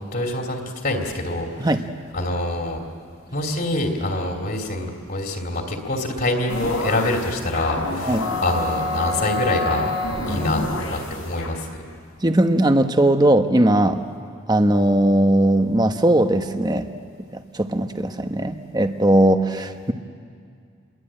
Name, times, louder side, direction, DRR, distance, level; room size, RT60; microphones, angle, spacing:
voice 1, 0.1-1.7 2.1-2.8 3.3-9.9 10.3-10.6 10.9-11.9, left 1 dB, 45° left, 1 dB, 3.0 m, -25 dB
sound 1, 6.5-11.5, left 2 dB, 85° left, 5.9 m, -27 dB
voice 2, 12.2-14.0 14.5-16.8 17.3-19.9, right 1 dB, 20° right, 7 dB, 1.0 m, -19 dB
29.0 x 22.5 x 8.9 m, 2.2 s
head